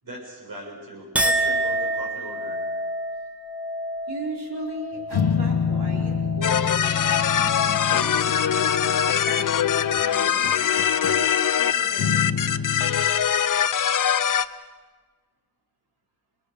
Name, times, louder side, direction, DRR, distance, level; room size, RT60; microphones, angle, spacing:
voice 1, 0.0-2.6 10.2-10.6, right 1 dB, 60° right, 0 dB, 6.8 m, -39 dB
Chink clink, 1.1-7.7 8.1-8.7, right 1 dB, 5° right, 1.2 m, -29 dB
voice 2, 4.1-10.5 11.0-12.3, right 2 dB, 85° right, 0 dB, 4.3 m, -37 dB
sound 1, 5.1-10.1 10.4-11.3 12.0-13.1, left 6 dB, 75° left, 1.1 m, -28 dB
sound 2, 6.4-14.4, left 9 dB, 55° left, 0.6 m, -22 dB
28.5 x 19.5 x 6.8 m, 1.4 s
wide cardioid pair, 170°, 39 cm